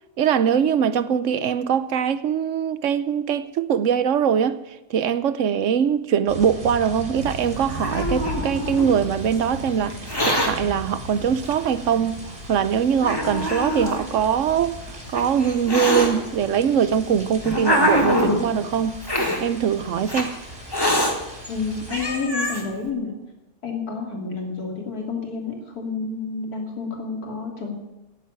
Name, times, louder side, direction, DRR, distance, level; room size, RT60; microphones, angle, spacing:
voice 1, 0.2-4.6 4.9-12.2 12.5-19.0 19.4-20.3, right 8 dB, 60° right, 0.9 m, -22 dB
sound 1, 6.3-22.2, equal, 35° right, 3.8 m, -37 dB
Hiss, 7.3-9.0 9.9-10.5 11.5-11.6 12.4-12.5 13.0-14.0 14.9-16.1 16.9-18.4 19.0-19.4 20.1-20.2 20.7-21.1 21.6-21.7 21.9-22.6, left 1 dB, 15° left, 2.2 m, -24 dB
voice 2, 21.5-23.1 23.6-27.7, left 4 dB, 60° left, 3.4 m, -29 dB
16.0 x 7.7 x 9.6 m
omnidirectional pair, 1.8 m